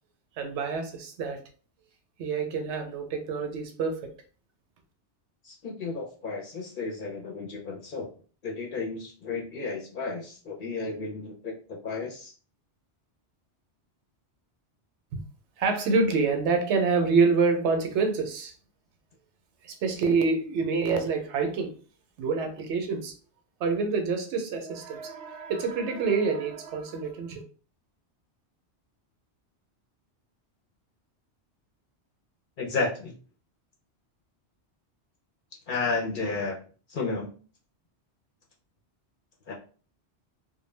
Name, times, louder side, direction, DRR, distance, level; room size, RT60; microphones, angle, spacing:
voice 1, 0.4-1.4 2.2-4.1 15.1-15.2 15.6-18.5 19.6-21.7 22.2-23.1 23.6-27.4, right 4 dB, 80° right, 0.9 m, -27 dB
voice 2, 5.4-8.1 8.4-11.5 11.8-12.3 32.6-33.1 35.7-36.6 36.9-37.3 39.5-39.6, left 4 dB, 55° left, 0.6 m, -32 dB
2.2 x 2.1 x 3.1 m
omnidirectional pair, 1.2 m